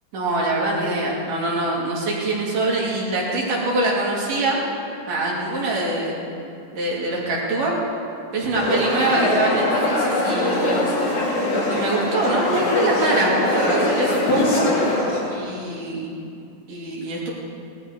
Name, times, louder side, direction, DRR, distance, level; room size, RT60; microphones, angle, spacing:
voice 1, 0.1-4.6 5.1-6.2 6.7-7.8 8.3-11.0 11.7-14.7 15.3-16.1 16.7-17.3, right 2 dB, 90° right, -5 dB, 4.4 m, -24 dB
sound 1, 8.5-15.3, left 1 dB, 70° left, 3.8 m, -22 dB
18.5 x 13.0 x 5.0 m, 2.5 s
omnidirectional pair, 3.6 m